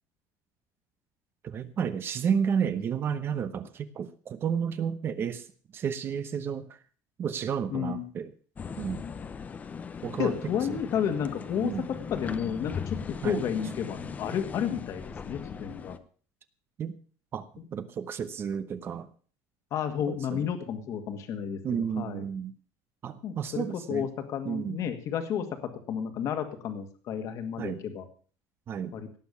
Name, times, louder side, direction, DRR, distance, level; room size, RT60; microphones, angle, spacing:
voice 1, 1.4-5.5 5.7-6.8 7.2-8.3 8.8-9.0 10.0-10.3 10.7-10.8 11.6-11.9 13.2-13.4 16.8-16.9 17.3-19.1 20.1-20.5 21.6-22.5 23.0-24.1 24.4-24.8 27.6-27.8 28.7-29.0, right 7 dB, 30° right, 12 dB, 0.9 m, -31 dB
voice 2, 7.7-8.1 10.2-11.7 12.1-13.0 13.2-16.0 19.7-22.2 23.2-28.0 28.9-29.1, left 8 dB, 45° left, 7 dB, 1.9 m, -32 dB
sound 1, 8.6-16.0, left 6 dB, 20° left, 0.8 m, -39 dB
18.0 x 7.0 x 7.0 m, 0.42 s
cardioid pair, 160°, 7 cm